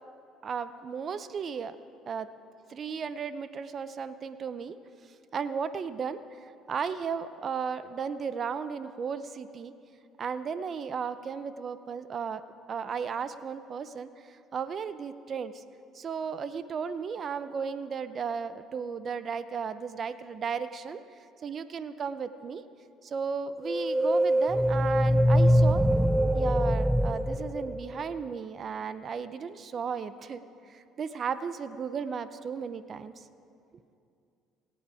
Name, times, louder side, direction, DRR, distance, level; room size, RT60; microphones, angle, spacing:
voice 1, 0.4-1.8 2.1-2.3 2.7-4.8 5.3-9.7 10.2-12.4 12.7-15.6 15.9-21.0 21.4-22.6 23.0-25.8 26.3-30.4 30.7-33.3, right 6 dB, 45° right, 13 dB, 0.6 m, -35 dB
sound 1, 23.6-28.2, equal, 5° right, 0.3 m, -24 dB
24.5 x 8.6 x 4.9 m, 2.5 s
supercardioid pair, 95°, 0 cm